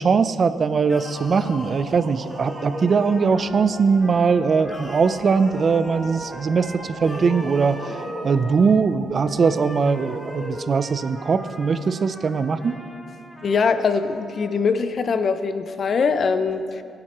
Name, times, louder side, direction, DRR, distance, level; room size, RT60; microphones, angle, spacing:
voice 1, 0.0-7.8 8.2-12.8, right 5 dB, 45° right, 13 dB, 0.4 m, -21 dB
sound 1, 0.8-3.6 4.6-6.1 6.9-8.4 9.3-10.8, left 1 dB, 20° left, 1.4 m, -37 dB
sound 2, 1.2-9.4, right 4 dB, 70° right, 0.9 m, -41 dB
Trumpet, 2.3-8.8 9.2-14.6, equal, ahead, 1.2 m, -41 dB
voice 2, 13.4-16.8, left 5 dB, 50° left, 10 dB, 0.6 m, -22 dB
16.5 x 8.6 x 3.0 m, 2.4 s
cardioid pair, 90°, 0 cm